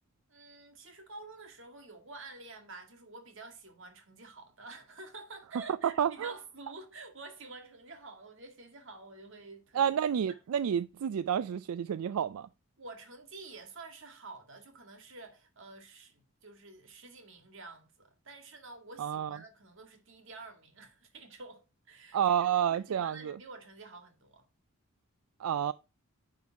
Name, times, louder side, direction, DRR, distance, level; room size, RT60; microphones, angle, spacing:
voice 1, 0.3-9.9 10.3-10.4 12.8-24.5, right 3 dB, 60° right, 2.0 m, -49 dB
voice 2, 6.0-6.3 9.7-12.5 19.0-19.4 22.1-23.3 25.4-25.7, right 8 dB, 80° right, 0.3 m, -30 dB
10.5 x 3.9 x 4.6 m
head